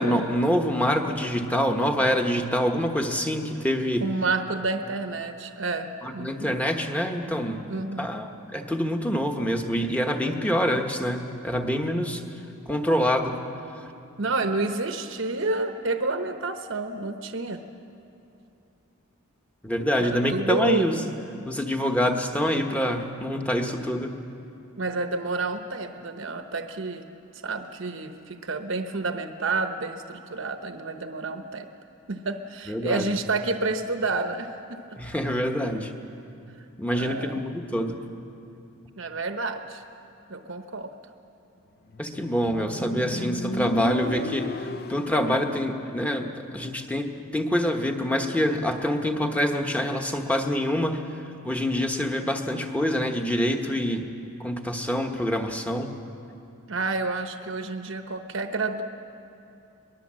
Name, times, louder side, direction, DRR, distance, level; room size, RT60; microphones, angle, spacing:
voice 1, 0.0-4.1 6.0-7.6 8.0-12.2 12.7-13.4 19.6-21.0 21.4-24.2 32.7-33.1 35.0-35.9 36.8-38.0 42.0-51.0 51.4-54.1 54.4-55.9, equal, 5° left, 4 dB, 1.1 m, -26 dB
voice 2, 4.0-6.6 7.7-8.1 14.2-17.6 20.0-20.9 24.8-27.0 27.4-31.7 32.1-34.8 36.9-37.3 38.9-39.8 40.3-40.9 56.7-58.8, right 3 dB, 65° right, 7 dB, 0.9 m, -29 dB
Motorcycle, 41.9-45.4, left 1 dB, 45° left, 0.7 m, -32 dB
23.0 x 20.5 x 7.5 m, 2.7 s
head